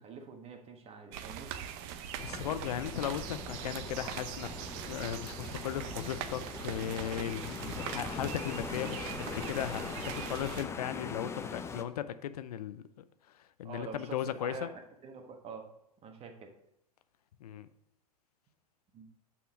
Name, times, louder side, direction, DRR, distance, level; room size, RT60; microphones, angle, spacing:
voice 1, 0.0-1.5 13.6-14.7 15.0-15.7 16.0-16.5 18.9-19.1, right 5 dB, 30° right, 4 dB, 1.3 m, -46 dB
sound 1, 1.1-10.6, right 9 dB, 45° right, 0.7 m, -42 dB
voice 2, 2.2-14.7 17.4-17.7, left 10 dB, 75° left, 13 dB, 0.5 m, -37 dB
sound 2, 2.2-11.8, left 5 dB, 15° left, 0.5 m, -42 dB
6.1 x 5.8 x 5.1 m, 0.80 s
hypercardioid pair, 100°, 20 cm